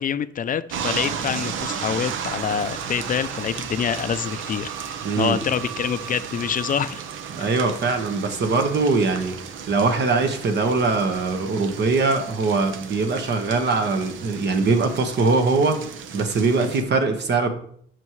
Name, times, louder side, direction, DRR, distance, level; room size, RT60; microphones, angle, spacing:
voice 1, 0.0-7.0 7.4-7.6, left 8 dB, 45° left, 14 dB, 0.4 m, -26 dB
sound 1, 0.7-16.8, right 7 dB, 80° right, 0.8 m, -34 dB
voice 2, 5.0-5.4 7.3-9.3 9.7-15.8 16.1-17.5, right 3 dB, 60° right, 6 dB, 1.3 m, -22 dB
11.0 x 6.2 x 3.2 m, 0.63 s
cardioid pair, 90°, 20 cm